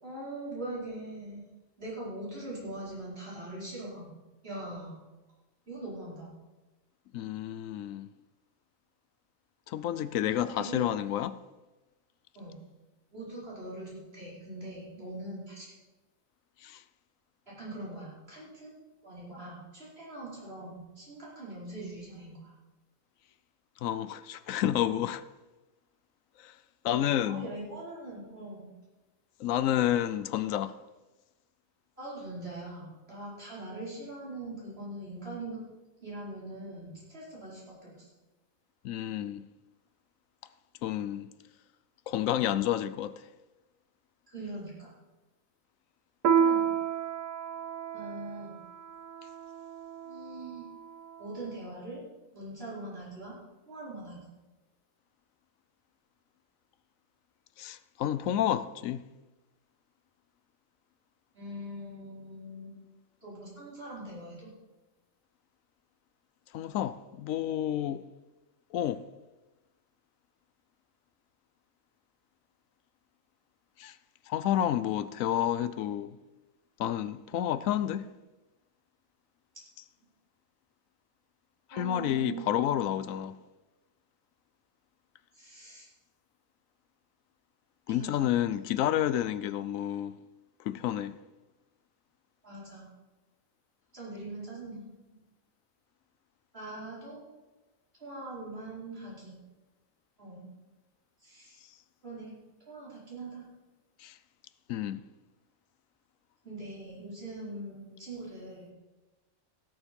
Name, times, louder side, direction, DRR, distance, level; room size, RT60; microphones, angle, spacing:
voice 1, 0.0-1.4 1.8-4.1 4.4-5.0 5.7-6.3 10.3-10.9 12.3-12.6 13.1-15.7 17.5-18.7 19.0-22.5 26.8-28.7 32.0-35.6 36.0-38.1 44.3-44.9 46.3-46.7 47.9-48.6 50.0-50.7 51.2-52.0 52.3-53.4 53.6-54.3 61.3-62.8 63.2-64.5 81.7-83.0 85.3-85.9 87.9-88.3 92.4-92.9 93.9-95.2 96.5-97.2 98.0-99.3 100.2-100.5 101.2-101.6 102.0-102.4 102.7-103.5 106.4-108.7, right 2 dB, 45° right, 5.1 m, -42 dB
voice 2, 7.1-8.1 9.7-11.4 16.6-16.8 23.8-25.2 26.4-26.5 26.8-27.5 29.4-30.8 38.8-39.4 40.8-41.3 42.1-43.2 57.6-59.0 66.5-68.0 68.7-69.0 73.8-74.0 74.3-76.2 76.8-78.1 81.7-83.4 87.9-90.2 90.6-91.1 104.0-104.2 104.7-105.0, left 11 dB, 80° left, 1.0 m, -30 dB
Piano, 46.2-51.2, right 7 dB, 75° right, 1.1 m, -31 dB
17.0 x 7.2 x 5.3 m
omnidirectional pair, 1.4 m